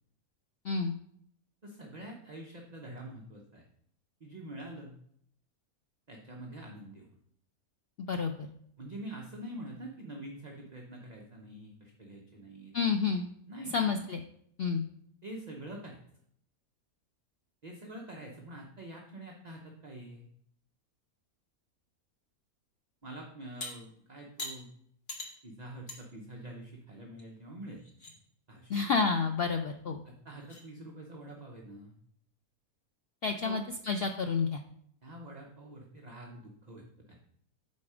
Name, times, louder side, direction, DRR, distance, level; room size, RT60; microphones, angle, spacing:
voice 1, 1.6-3.6 4.2-5.0 6.1-7.1 8.8-12.7 13.5-13.8 15.2-16.0 17.6-20.3 23.0-24.7 25.4-27.8 28.5-28.8 30.0-31.9 33.4-33.6 35.0-37.2, right 1 dB, 35° right, -1 dB, 0.8 m, -46 dB
voice 2, 8.0-8.5 12.7-13.2 13.7-14.2 14.6-14.8 28.7-30.0 33.2-34.6, left 5 dB, 70° left, 5 dB, 0.5 m, -30 dB
sound 1, 23.6-23.7 24.4-24.6 25.1-25.3 25.9-26.0 26.4-26.5 27.2-27.3 27.7-28.1 29.8-29.9 30.4-30.6, left 2 dB, 40° left, 1.7 m, -41 dB
8.2 x 4.3 x 4.9 m, 0.68 s
omnidirectional pair, 1.5 m